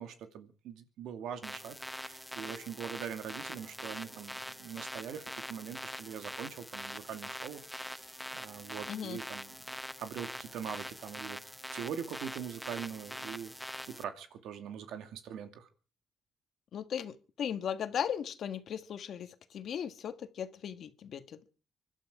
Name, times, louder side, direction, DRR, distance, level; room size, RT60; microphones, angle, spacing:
voice 1, 0.0-11.4 11.7-13.5 13.9-15.7, right 8 dB, 80° right, 7 dB, 2.5 m, -43 dB
sound 1, 1.4-14.0, equal, 5° left, 0.9 m, -44 dB
voice 2, 8.9-9.2 16.7-21.5, left 8 dB, 65° left, 9 dB, 1.6 m, -37 dB
25.0 x 12.0 x 4.9 m, 0.39 s
cardioid pair, 90°, 0 cm